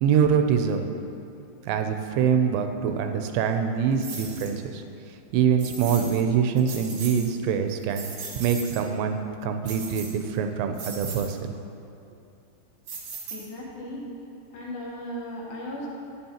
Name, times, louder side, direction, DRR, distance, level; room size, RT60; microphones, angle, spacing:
voice 1, 0.0-0.9 1.6-4.8 5.3-8.1 8.4-11.4, right 7 dB, 85° right, 6 dB, 2.8 m, -24 dB
sound 1, 4.0-4.5 5.6-6.2 6.6-7.3 7.7-8.8 9.6-10.4 10.7-11.3 12.9-13.7, right 4 dB, 65° right, 2.1 m, -38 dB
voice 2, 13.3-14.0 14.5-15.9, equal, 65° left, -5 dB, 2.8 m, -36 dB
11.0 x 9.5 x 2.9 m, 2.7 s
omnidirectional pair, 5.1 m